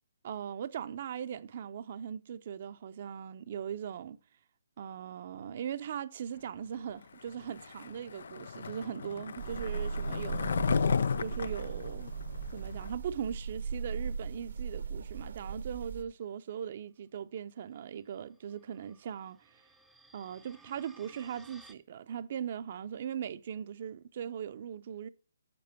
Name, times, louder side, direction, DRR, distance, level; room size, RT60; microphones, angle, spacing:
voice 1, 0.2-4.2 4.8-10.6 11.2-12.1 12.5-19.6 20.1-25.1, right 8 dB, 45° right, 0.6 m, -39 dB
Skateboard, 7.5-12.9, left 6 dB, 65° left, 0.4 m, -34 dB
sound 1, 9.4-16.0, right 5 dB, 70° right, 1.0 m, -38 dB
sound 2, 18.3-21.7, right 3 dB, ahead, 0.7 m, -59 dB
7.7 x 6.6 x 5.7 m
hypercardioid pair, 145°, 0 cm